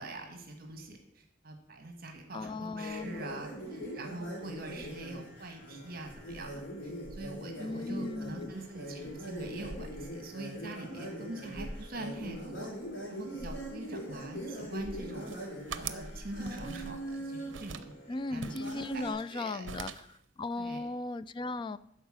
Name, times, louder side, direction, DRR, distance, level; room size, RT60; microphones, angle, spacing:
voice 1, 0.0-12.7 13.1-15.3 15.7-17.9 18.3-19.0 19.3-19.7 20.6-20.9, right 2 dB, 55° right, 1.4 m, -44 dB
voice 2, 2.3-3.2 7.6-8.5 18.1-21.8, left 3 dB, 25° left, 0.3 m, -37 dB
sound 1, 2.8-19.1, right 1 dB, 75° left, 3.4 m, -42 dB
sound 2, 15.1-16.1 16.5-17.2 17.5-17.9 18.4-19.4 19.6-20.2, right 7 dB, 85° right, 0.6 m, -43 dB
12.0 x 4.4 x 7.4 m
head